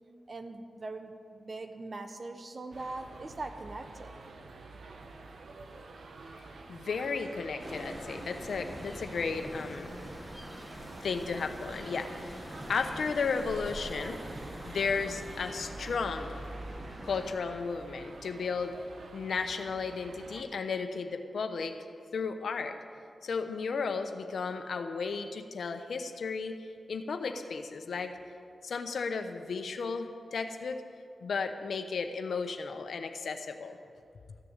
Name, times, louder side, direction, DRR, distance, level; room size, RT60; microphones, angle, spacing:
voice 1, 0.3-4.1, right 2 dB, 45° right, 7 dB, 1.1 m, -41 dB
sound 1, 2.7-20.4, right 3 dB, 75° right, 0.9 m, -48 dB
voice 2, 6.3-9.9 10.5-14.2 14.6-16.4 17.0-18.7 19.1-21.8 22.1-22.8 23.2-28.2 28.6-30.8 31.2-33.8, left 5 dB, 80° left, 7 dB, 0.9 m, -34 dB
sound 2, 7.6-17.3, equal, 15° right, 1.7 m, -44 dB
14.5 x 6.8 x 8.9 m, 2.3 s
cardioid pair, 65°, 0 cm